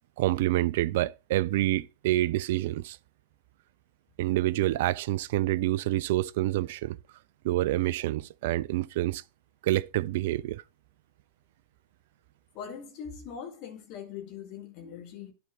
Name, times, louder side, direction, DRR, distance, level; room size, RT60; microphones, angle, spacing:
voice 1, 0.2-3.0 4.2-7.0 7.4-9.2 9.6-10.6, right 15 dB, 55° right, 0.3 m, -27 dB
voice 2, 12.5-15.3, left 7 dB, 40° left, 2.1 m, -41 dB
11.5 x 4.3 x 2.6 m
figure-of-eight pair, 90°, 0 cm